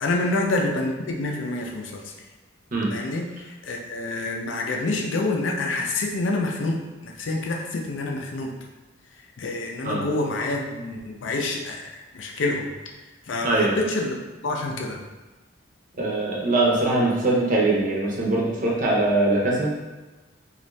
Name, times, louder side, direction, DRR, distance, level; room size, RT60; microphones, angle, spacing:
voice 1, 0.0-2.0 2.9-3.3 3.6-8.5 9.4-11.8 12.1-12.7 13.3-14.1 14.4-15.0, left 2 dB, 70° left, 1 dB, 0.5 m, -27 dB
voice 2, 13.4-13.8 16.0-19.7, right 2 dB, 45° right, -3 dB, 0.7 m, -22 dB
2.6 x 2.4 x 3.2 m, 1.2 s
head